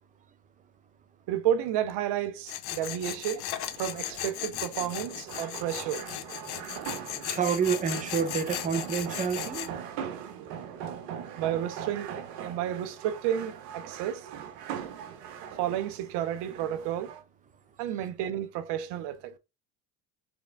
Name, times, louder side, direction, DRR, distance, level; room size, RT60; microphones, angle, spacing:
voice 1, 1.3-3.5 3.8-6.1 11.4-14.3 15.6-17.1 17.8-19.4, right 11 dB, 55° right, 0.7 m, -31 dB
Tools, 2.5-9.7, left 13 dB, 50° left, 0.8 m, -37 dB
sound 1, 3.5-17.2, right 8 dB, 75° right, 1.0 m, -41 dB
voice 2, 7.3-9.7, right 6 dB, 15° right, 0.6 m, -28 dB
3.6 x 3.4 x 3.3 m
hypercardioid pair, 75°, 48 cm